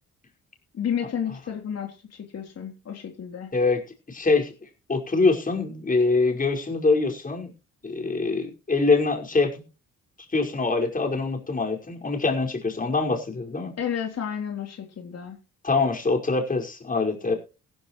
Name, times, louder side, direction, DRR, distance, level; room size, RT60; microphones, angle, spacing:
voice 1, 0.7-3.5 13.8-15.4, left 8 dB, 55° left, 2 dB, 3.8 m, -31 dB
voice 2, 4.1-7.5 7.8-9.6 10.3-13.7 15.6-17.3, left 3 dB, 25° left, 1 dB, 5.4 m, -24 dB
16.5 x 15.5 x 3.2 m, 0.33 s
cardioid pair, 90°, 30 cm